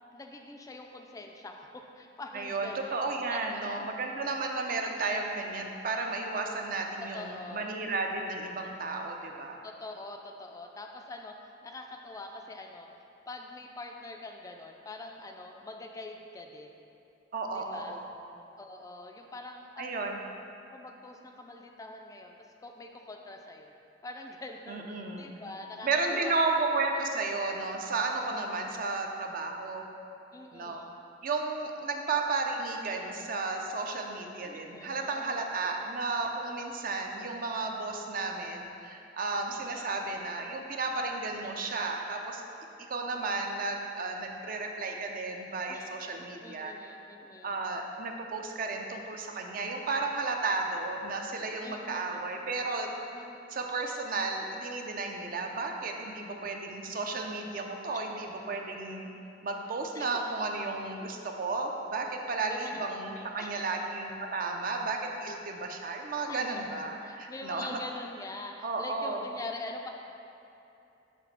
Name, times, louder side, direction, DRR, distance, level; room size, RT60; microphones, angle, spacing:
voice 1, 0.1-3.0 3.3-3.9 7.0-7.7 9.6-11.4 11.6-12.9 13.3-16.8 17.5-18.0 18.6-19.9 20.7-23.7 24.0-26.4 27.3-27.4 28.1-28.4 28.7-28.8 30.3-30.9 34.4-35.4 35.7-35.9 39.5-40.0 45.7-45.9 46.2-47.6 51.6-52.3 53.1-53.7 57.9-58.1 58.4-58.5 59.9-60.2 62.5-62.8 63.4-63.8 66.3-66.4 67.0-69.9, left 2 dB, 20° left, 3 dB, 0.3 m, -44 dB
voice 2, 2.3-9.6 17.3-18.1 19.8-20.2 24.7-25.3 25.8-29.9 30.5-30.8 31.2-42.4 42.9-46.7 47.4-52.9 53.5-59.1 59.4-67.8 68.6-69.2, right 3 dB, 50° right, 3 dB, 0.5 m, -33 dB
6.0 x 3.2 x 5.8 m, 2.8 s
head